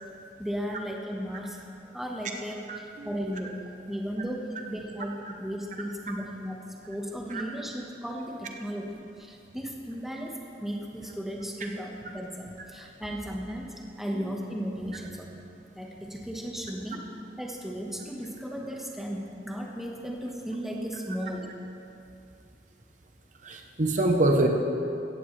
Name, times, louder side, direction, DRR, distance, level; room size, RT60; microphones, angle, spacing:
voice 1, 0.4-1.7 1.9-3.6 3.9-8.9 9.2-15.4 15.7-17.0 17.4-21.5, equal, ahead, -1 dB, 1.3 m, -35 dB
voice 2, 2.7-3.1 7.3-7.4 23.4-24.5, right 2 dB, 45° right, 2 dB, 1.0 m, -25 dB
16.0 x 15.0 x 3.3 m, 2.6 s
head